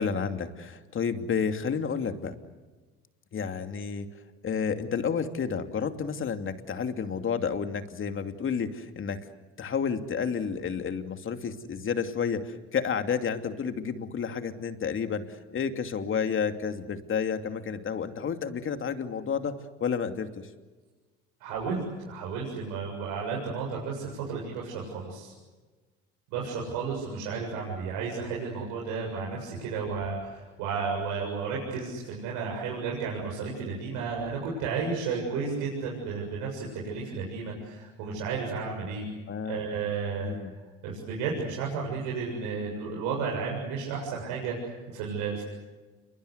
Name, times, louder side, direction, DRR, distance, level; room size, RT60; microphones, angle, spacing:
voice 1, 0.0-2.3 3.3-4.1 4.4-9.3 9.6-20.5 39.3-39.6 40.2-40.5, left 6 dB, 40° left, 7 dB, 2.8 m, -31 dB
voice 2, 21.4-25.3 26.3-39.0 39.5-40.3 40.8-45.4, right 5 dB, 75° right, -2 dB, 7.5 m, -33 dB
28.5 x 24.0 x 8.2 m, 1.3 s
hypercardioid pair, 75°, 31 cm